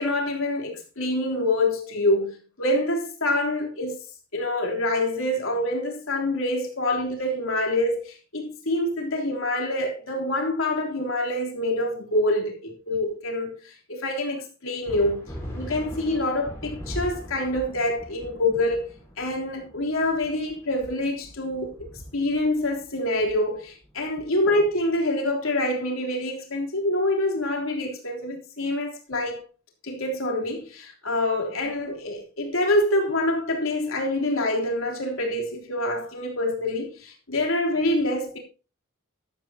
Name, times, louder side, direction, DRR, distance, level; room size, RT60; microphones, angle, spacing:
voice 1, 0.0-4.0 4.3-12.5 12.9-15.2 15.5-18.9 19.2-21.7 22.1-29.4 29.8-38.4, left 1 dB, 75° left, 3.5 m, -26 dB
sound 1, 14.9-24.8, equal, 15° left, 4.5 m, -40 dB
14.0 x 12.0 x 2.8 m
head